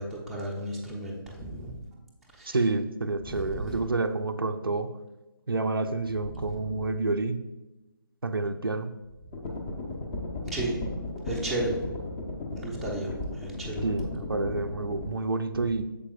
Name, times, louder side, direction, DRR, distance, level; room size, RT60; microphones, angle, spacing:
voice 1, 0.0-1.8 2.3-2.6 3.2-3.8 6.3-6.7 10.5-10.8 11.3-11.8 12.6-13.8, right 1 dB, ahead, -7 dB, 0.7 m, -34 dB
voice 2, 2.5-4.9 5.5-7.4 8.2-8.9 13.8-15.8, right 3 dB, 75° right, 8 dB, 0.5 m, -29 dB
Helicopter Beat, 9.3-15.1, left 2 dB, 20° left, 0.9 m, -35 dB
8.4 x 7.2 x 2.4 m, 1.1 s
figure-of-eight pair, 145°, 12 cm